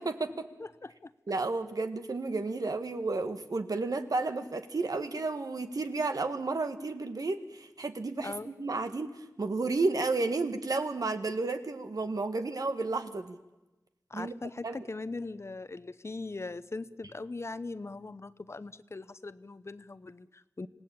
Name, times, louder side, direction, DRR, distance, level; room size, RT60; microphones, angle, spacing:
voice 1, 0.0-0.5 1.3-13.4 14.1-14.3 14.6-14.8, right 3 dB, 75° right, 8 dB, 1.5 m, -32 dB
voice 2, 0.6-1.1 8.2-8.5 14.1-20.7, left 3 dB, 45° left, 14 dB, 0.8 m, -40 dB
26.5 x 17.5 x 8.8 m, 1.1 s
wide cardioid pair, 80°, 6 cm